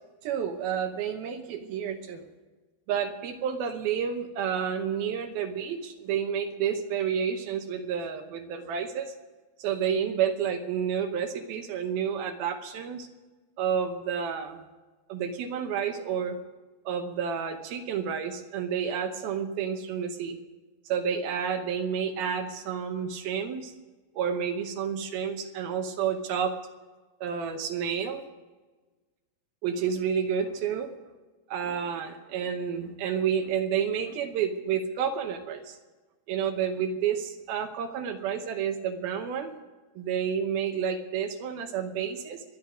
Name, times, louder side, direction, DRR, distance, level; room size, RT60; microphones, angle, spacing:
voice 1, 0.2-2.3 2.9-9.1 9.6-13.1 13.6-14.6 15.1-16.4 16.9-20.4 20.9-23.7 24.2-26.5 27.2-28.2 29.6-30.9 31.5-35.8 36.3-39.6 40.0-42.4, right 7 dB, 70° right, 6 dB, 2.5 m, -30 dB
24.0 x 10.0 x 5.0 m, 1.3 s
omnidirectional pair, 5.0 m